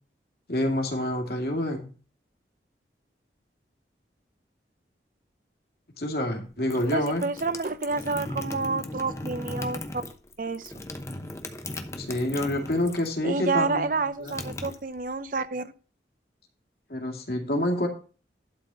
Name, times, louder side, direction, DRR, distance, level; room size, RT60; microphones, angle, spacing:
voice 1, 0.5-1.9 6.0-7.2 12.0-14.4 16.9-17.9, left 1 dB, 60° left, 2 dB, 2.3 m, -28 dB
sound 1, 6.4-13.2 13.5-15.4, left 1 dB, 15° left, 0.8 m, -37 dB
voice 2, 6.9-10.0 10.4-10.7 13.2-15.7, right 3 dB, 50° right, 12 dB, 0.6 m, -29 dB
11.5 x 4.2 x 6.9 m, 0.37 s
head